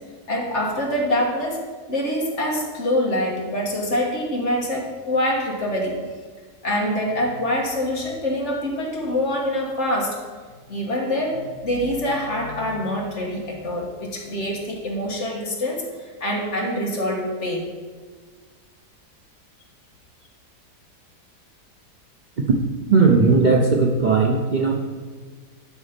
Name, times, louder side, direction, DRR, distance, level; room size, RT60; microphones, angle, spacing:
voice 1, 0.3-1.6 1.9-6.0 6.6-10.2 10.7-17.7, left 1 dB, 45° left, -1 dB, 1.7 m, -25 dB
voice 2, 22.9-24.7, right 4 dB, 80° right, 0 dB, 0.4 m, -17 dB
12.0 x 4.2 x 5.2 m, 1.5 s
omnidirectional pair, 1.9 m